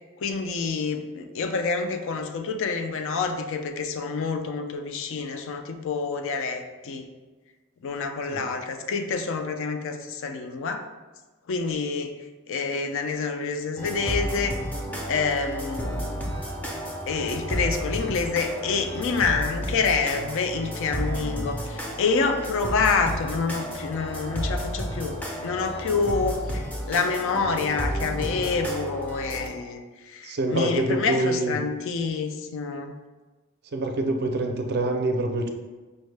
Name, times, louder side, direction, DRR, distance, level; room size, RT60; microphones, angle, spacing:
voice 1, 0.2-7.1 7.8-10.9 11.5-14.6 15.1-16.3 17.1-33.0, left 4 dB, 65° left, 6 dB, 0.4 m, -27 dB
sound 1, 13.8-29.5, equal, 10° left, 0.5 m, -32 dB
voice 2, 30.2-31.6 33.7-35.5, right 2 dB, 50° right, 4 dB, 0.4 m, -26 dB
5.2 x 2.1 x 3.2 m, 1.3 s
head